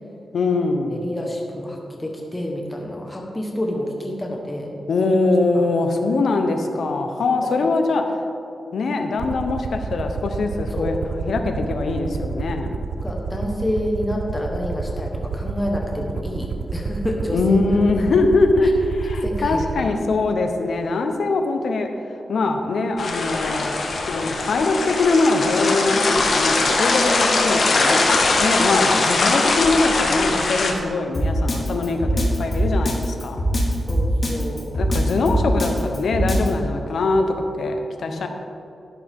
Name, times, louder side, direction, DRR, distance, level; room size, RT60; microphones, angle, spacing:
voice 1, 0.3-1.0 4.9-8.0 8.7-10.9 11.2-12.8 17.3-21.9 22.3-23.8 24.1-33.4 34.7-37.3 37.5-38.3, left 3 dB, 70° left, 5 dB, 1.0 m, -22 dB
voice 2, 0.9-5.1 5.5-5.7 6.8-7.0 7.6-7.7 10.8-10.9 13.0-17.7 18.1-18.2 18.6-18.7 19.2-19.9 31.9-32.1 33.9-34.6 38.1-38.3, left 1 dB, 10° left, -1 dB, 1.3 m, -29 dB
Aircraft, 9.2-19.8, right 4 dB, 55° right, 0.7 m, -29 dB
sound 1, 23.0-30.7, left 3 dB, 55° left, 1.4 m, -21 dB
Drum kit, 31.1-36.5, equal, 30° left, 2.4 m, -22 dB
11.5 x 10.5 x 3.7 m, 2.7 s
wide cardioid pair, 125°, 0 cm